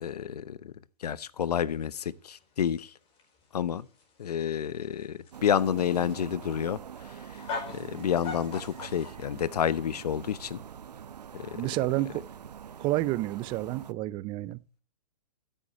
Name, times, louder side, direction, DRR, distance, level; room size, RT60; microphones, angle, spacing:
voice 1, 0.0-0.7 1.0-2.9 3.5-3.9 4.2-6.8 7.7-10.6 11.3-11.5, left 9 dB, 75° left, 0.9 m, -29 dB
sound 1, 1.7-9.1, left 4 dB, 25° left, 4.6 m, -42 dB
sound 2, 5.3-13.9, right 8 dB, 80° right, 0.9 m, -44 dB
voice 2, 11.6-12.2 12.8-14.8, right 17 dB, 25° right, 0.5 m, -30 dB
13.0 x 10.0 x 3.1 m
hypercardioid pair, 135°, 21 cm